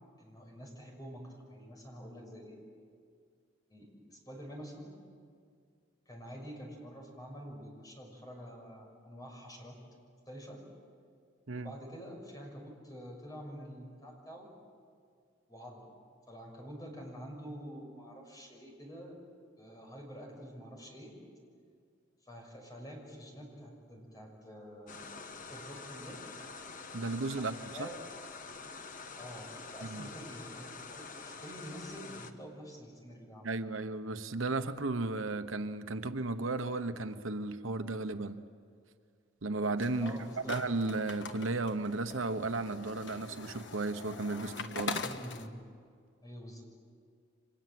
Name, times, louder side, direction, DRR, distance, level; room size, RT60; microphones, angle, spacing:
voice 1, 0.2-2.6 3.7-4.9 6.1-9.8 10.3-10.6 11.5-14.5 15.5-15.9 16.3-19.2 19.6-21.2 22.2-26.2 27.4-28.0 29.2-33.6 40.0-40.5 45.0-45.5 46.2-46.6, equal, 20° left, 0 dB, 6.5 m, -47 dB
sound 1, 24.9-32.3, left 4 dB, 40° left, 1.4 m, -46 dB
voice 2, 26.9-27.9 29.8-30.1 33.4-38.4 39.4-45.0, right 3 dB, 90° right, 9 dB, 1.1 m, -34 dB
sound 2, 39.8-45.5, left 3 dB, 65° left, 1.4 m, -43 dB
30.0 x 25.0 x 7.8 m, 2.2 s
head